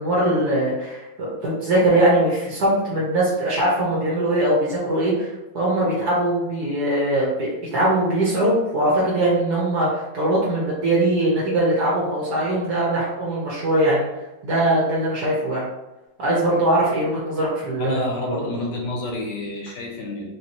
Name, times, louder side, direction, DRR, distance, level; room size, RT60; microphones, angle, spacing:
voice 1, 0.0-14.0 14.4-15.6 16.2-18.0 18.3-18.4, right 1 dB, 60° right, -6 dB, 1.4 m, -21 dB
voice 2, 17.8-20.3, left 2 dB, 70° left, 0 dB, 1.3 m, -29 dB
4.1 x 2.9 x 2.9 m, 1.0 s
omnidirectional pair, 2.1 m